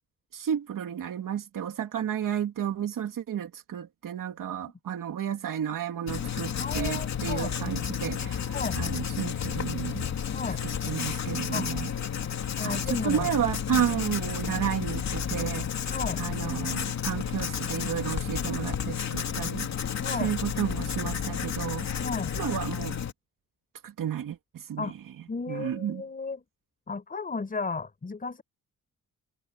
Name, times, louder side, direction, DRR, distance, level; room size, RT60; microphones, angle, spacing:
voice 1, 0.3-8.5 8.8-10.1 10.8-11.9 12.6-15.7 16.2-19.7 20.2-21.9 22.4-23.0 23.8-24.9 25.5-26.0, right 9 dB, 75° right, 2.7 m, -32 dB
Writing, 6.1-23.1, left 8 dB, 55° left, 2.9 m, -31 dB
voice 2, 6.6-7.5 8.5-8.8 10.3-10.6 11.5-11.7 12.6-13.3 13.7-13.9 15.9-16.2 20.0-20.3 22.0-22.3 24.8-24.9 25.3-26.4 26.9-28.4, left 4 dB, 25° left, 5.0 m, -34 dB
wide cardioid pair, 180°, 33 cm